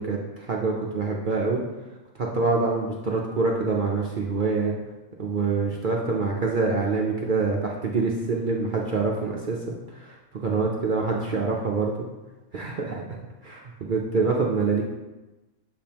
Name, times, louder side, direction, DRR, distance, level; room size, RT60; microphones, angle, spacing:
voice 1, 0.0-1.6 2.1-4.7 5.2-11.9 12.5-13.0 13.4-14.8, right 4 dB, 50° right, -2 dB, 0.6 m, -26 dB
7.7 x 5.2 x 2.9 m, 1.1 s
omnidirectional pair, 1.4 m